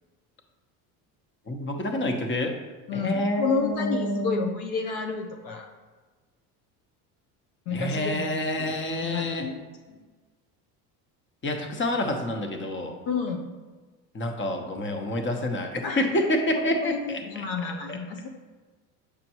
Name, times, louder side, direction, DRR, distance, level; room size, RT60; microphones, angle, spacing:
voice 1, 1.5-2.6 2.9-4.5 7.7-9.5 11.4-13.0 14.1-17.5, left 1 dB, 25° left, 4 dB, 1.2 m, -28 dB
voice 2, 2.9-5.7 7.7-10.0 13.1-13.5 15.8-16.2 16.5-18.3, left 5 dB, 60° left, 3 dB, 0.9 m, -31 dB
8.5 x 5.2 x 3.0 m, 1.4 s
supercardioid pair, 90°, 45 cm